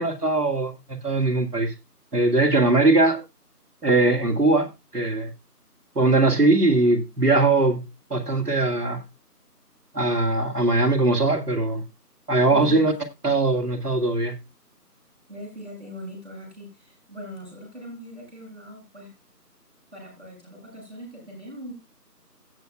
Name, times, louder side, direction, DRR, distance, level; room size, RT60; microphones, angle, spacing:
voice 1, 0.0-1.7 2.1-3.2 3.8-5.3 6.0-7.8 8.1-9.0 9.9-11.8 12.3-12.9 13.2-14.3, right 2 dB, 70° right, 2.3 m, -21 dB
voice 2, 12.5-12.9 15.3-19.1 19.9-21.7, equal, 45° right, 6.4 m, -40 dB
17.0 x 6.9 x 2.3 m
figure-of-eight pair, 180°, 48 cm